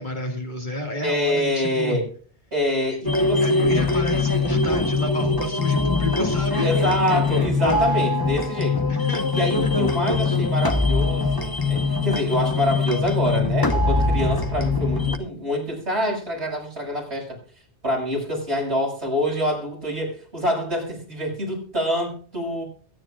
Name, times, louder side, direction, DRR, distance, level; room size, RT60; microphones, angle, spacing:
voice 1, 0.0-2.0 3.4-6.7 8.9-9.7, left 1 dB, 45° left, 2 dB, 2.3 m, -30 dB
voice 2, 1.0-2.1 2.5-3.9 6.6-8.9 9.3-17.4 17.8-22.6, equal, 75° right, -1 dB, 6.5 m, -26 dB
sound 1, 3.1-15.2, left 3 dB, 20° left, 1.1 m, -22 dB
23.0 x 10.0 x 2.4 m, 0.43 s
omnidirectional pair, 1.1 m